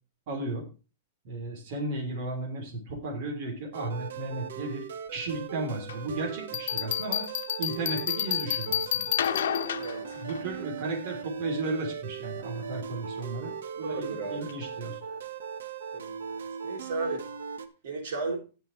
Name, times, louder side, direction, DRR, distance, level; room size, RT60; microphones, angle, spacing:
voice 1, 0.3-0.6 1.2-4.8 5.1-7.2 7.6-9.1 10.1-15.0, right 2 dB, 45° right, 0 dB, 3.4 m, -34 dB
sound 1, 3.7-17.7, right 7 dB, 90° right, 1.3 m, -39 dB
sound 2, 5.9-6.1 6.8-7.4 9.0-11.0 12.6-13.1 13.8-13.9 14.5-14.6 14.9-15.0 15.2-15.3, left 9 dB, 85° left, 1.0 m, -33 dB
Bell, 6.5-9.9, left 13 dB, 55° left, 0.5 m, -31 dB
voice 2, 9.8-10.2 13.8-14.5 15.0-15.2 15.9-16.1 16.6-17.2 17.8-18.4, right 3 dB, 65° right, 2 dB, 3.8 m, -34 dB
18.5 x 6.2 x 3.2 m, 0.32 s
supercardioid pair, 160°, 0 cm